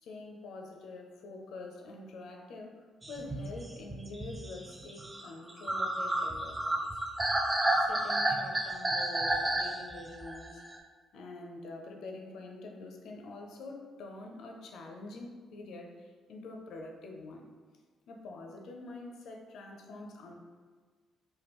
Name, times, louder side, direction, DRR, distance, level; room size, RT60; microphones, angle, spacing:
voice 1, 0.0-6.9 7.8-10.6 11.1-17.5 18.1-20.3, left 2 dB, 80° left, 2 dB, 0.4 m, -46 dB
sound 1, 3.0-10.8, right 1 dB, 20° right, 0.4 m, -31 dB
3.5 x 2.2 x 3.0 m, 1.5 s
cardioid pair, 90°, 0 cm